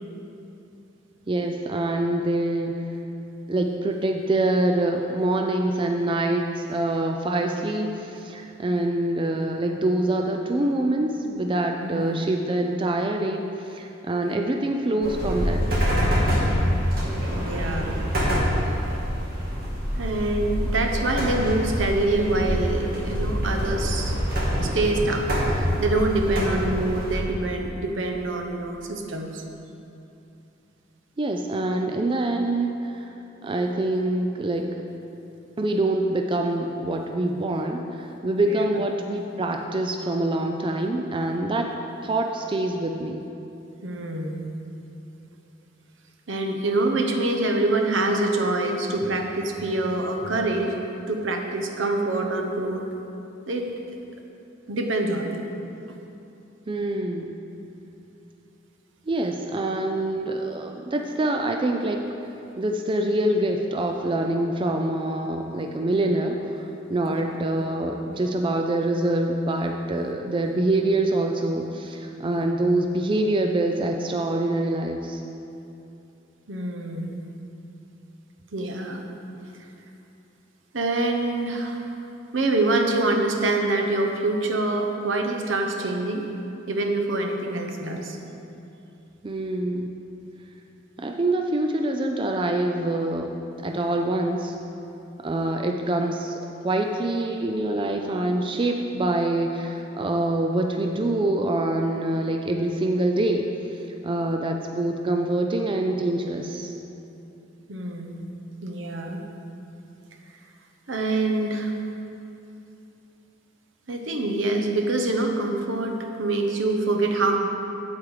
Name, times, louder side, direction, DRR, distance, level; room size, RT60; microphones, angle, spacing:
voice 1, 1.3-2.7 3.5-15.6 26.3-26.7 31.2-33.1 33.4-34.7 35.6-41.7 42.0-43.2 56.7-57.4 59.1-62.0 62.6-75.2 89.2-89.9 91.0-94.5 95.2-106.7, right 1 dB, 25° right, 3 dB, 0.4 m, -25 dB
voice 2, 11.8-12.3 17.3-18.0 19.9-24.2 24.6-29.4 38.5-38.7 43.8-44.4 46.3-50.8 51.1-52.9 53.5-53.7 54.7-55.4 67.1-67.3 76.5-77.2 78.5-79.0 80.7-81.9 82.3-86.2 86.7-88.2 107.7-108.3 108.6-109.2 110.9-111.7 113.9-117.4, right 2 dB, 75° right, 2 dB, 1.0 m, -25 dB
sound 1, 15.0-27.2, equal, 50° right, 2.3 m, -25 dB
8.5 x 8.1 x 4.8 m, 2.8 s
head